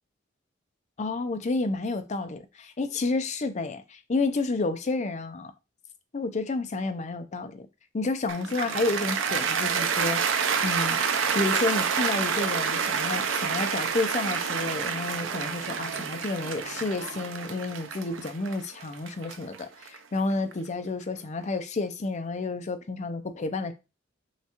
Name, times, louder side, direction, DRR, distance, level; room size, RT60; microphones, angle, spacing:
voice 1, 1.0-5.5 6.1-7.7 7.9-10.2 10.6-11.0 11.3-23.7, left 3 dB, 35° left, 0.5 m, -30 dB
Cheering / Applause, 8.3-20.5, right 6 dB, 75° right, 0.5 m, -28 dB
5.6 x 2.3 x 2.9 m
head